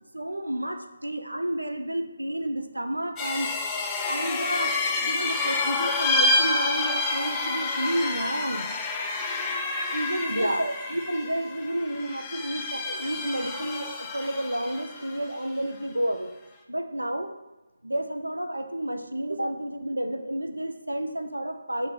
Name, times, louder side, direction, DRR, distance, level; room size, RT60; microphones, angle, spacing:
voice 1, 0.1-3.5 4.0-8.7 9.9-16.3 16.7-17.3 17.8-21.9, right 1 dB, 85° right, 6 dB, 0.4 m, -30 dB
sound 1, 3.2-15.2, left 3 dB, 15° left, 0.3 m, -28 dB
4.8 x 2.0 x 3.4 m, 1.0 s
figure-of-eight pair, 150°, 0 cm